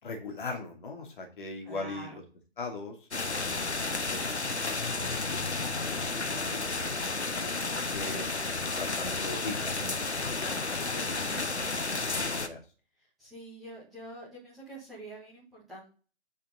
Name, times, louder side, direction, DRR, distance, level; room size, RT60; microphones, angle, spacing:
voice 1, 0.0-2.2 2.6-3.7 4.1-7.0 7.3-8.3 8.7-11.8 12.1-12.6, left 3 dB, 50° left, 2 dB, 2.8 m, -41 dB
voice 2, 1.7-2.1 6.1-6.5 10.4-11.0 13.2-15.9, right 1 dB, ahead, -10 dB, 0.4 m, -46 dB
sound 1, 3.1-12.5, left 3 dB, 85° left, 1.1 m, -32 dB
8.9 x 5.6 x 3.8 m, 0.37 s
figure-of-eight pair, 135°, 33 cm